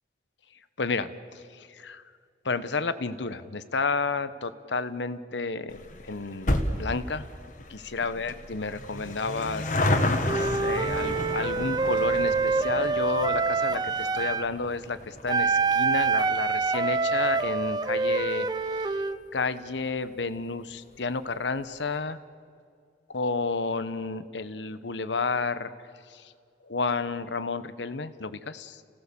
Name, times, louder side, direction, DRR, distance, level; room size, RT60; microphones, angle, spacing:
voice 1, 0.8-2.0 2.4-7.3 7.7-19.0 19.3-22.2 23.1-25.7 26.1-26.3 26.6-28.8, left 4 dB, 80° left, 13 dB, 1.0 m, -31 dB
sound 1, 5.7-18.4 18.7-18.8 19.7-19.8 20.0-20.1 20.4-20.5, left 1 dB, 45° left, 1.5 m, -32 dB
Wind instrument woodwind instrument, 10.3-14.5 15.3-19.2, right 4 dB, 25° right, 0.5 m, -26 dB
29.5 x 17.0 x 7.0 m, 2.3 s
head